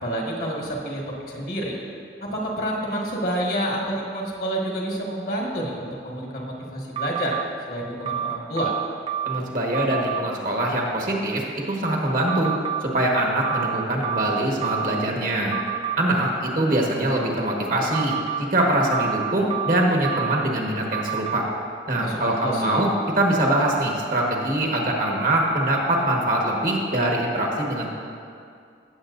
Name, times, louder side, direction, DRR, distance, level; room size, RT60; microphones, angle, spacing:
voice 1, 0.0-1.8 2.2-7.4 7.7-8.7 21.9-22.9, equal, 55° left, -2 dB, 1.6 m, -28 dB
sound 1, 7.0-7.4 8.1-9.4 9.7-10.2 12.3-12.8 13.4-15.1 15.5-16.0 17.9-18.4 18.9-20.5 20.9-21.4, right 10 dB, 30° right, 0.3 m, -28 dB
voice 2, 9.2-12.5 12.8-15.5 16.0-21.4 21.9-22.9 23.2-27.9, right 1 dB, 50° right, -1 dB, 1.4 m, -23 dB
16.0 x 7.2 x 2.6 m, 2.3 s
head